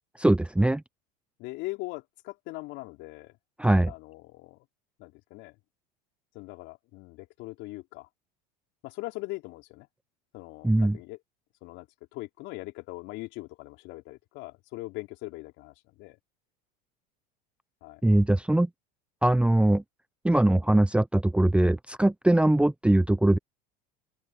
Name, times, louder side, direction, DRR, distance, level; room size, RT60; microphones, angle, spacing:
voice 1, 0.2-0.8 3.6-3.9 10.6-11.0 18.0-18.7 19.2-19.8 20.2-23.4, right 1 dB, 5° right, 0.9 m, -21 dB
voice 2, 1.4-3.3 3.9-4.6 5.0-5.5 6.3-8.1 8.8-9.9 10.3-11.2 11.6-11.9 12.1-16.2 17.8-18.0, left 21 dB, 60° left, 5.0 m, -40 dB
open air
hypercardioid pair, 85°, 21 cm